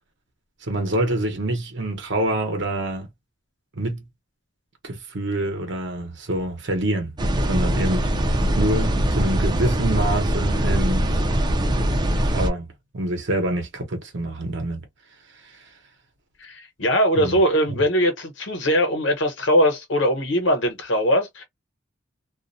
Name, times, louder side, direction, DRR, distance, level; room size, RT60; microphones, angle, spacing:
voice 1, 0.6-3.1 3.7-4.0 4.8-7.1 7.5-8.1 8.6-11.2 12.2-12.7 12.9-14.8 15.4-15.7 17.1-17.4 17.7-17.8, right 1 dB, 65° right, 0.8 m, -26 dB
sound 1, 7.2-12.5, right 1 dB, 20° right, 0.4 m, -22 dB
voice 2, 16.4-21.4, equal, 75° left, 1.0 m, -21 dB
2.4 x 2.0 x 2.6 m
head